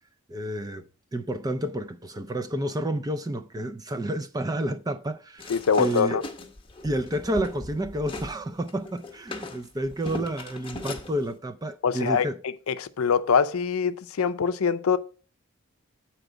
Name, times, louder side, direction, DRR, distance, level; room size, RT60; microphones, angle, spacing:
voice 1, 0.3-0.9 1.1-5.5 5.8-6.2 6.8-12.4, right 1 dB, 15° right, 0.4 m, -30 dB
sound 1, 5.4-8.3 8.7-11.1, left 2 dB, 25° left, 0.8 m, -37 dB
voice 2, 5.5-6.2 11.8-12.3 12.7-15.0, left 6 dB, 80° left, 0.5 m, -23 dB
7.9 x 4.4 x 5.0 m
head